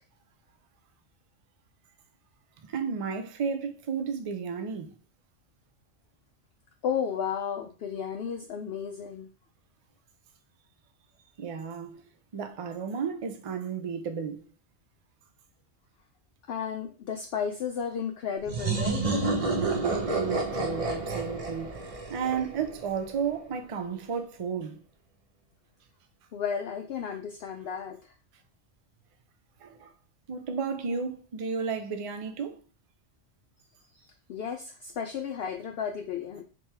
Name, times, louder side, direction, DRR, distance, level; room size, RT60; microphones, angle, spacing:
voice 1, 2.6-4.9 11.4-12.0 12.3-14.4 20.1-24.8 29.6-29.9 30.3-32.6, right 6 dB, 60° right, 0.3 m, -33 dB
voice 2, 6.8-9.3 16.5-19.1 26.3-28.1 34.3-36.4, left 7 dB, 65° left, 0.7 m, -33 dB
sound 1, 18.5-23.0, right 3 dB, 35° right, 0.8 m, -29 dB
3.7 x 3.0 x 4.2 m
omnidirectional pair, 1.3 m